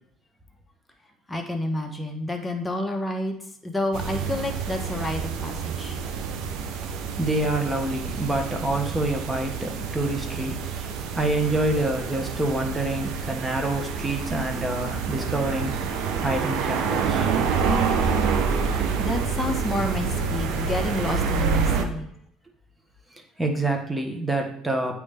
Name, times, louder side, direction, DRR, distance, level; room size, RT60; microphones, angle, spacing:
voice 1, 1.3-3.4 3.6-6.0 19.0-22.1, left 1 dB, 15° left, 3 dB, 1.1 m, -29 dB
sound 1, 3.9-21.8, right 5 dB, 70° right, 0.7 m, -27 dB
voice 2, 7.2-10.6 11.1-15.8 16.2-17.3 23.4-25.0, right 2 dB, 15° right, 3 dB, 1.2 m, -27 dB
8.6 x 3.3 x 3.4 m, 0.70 s
supercardioid pair, 80°, 0 cm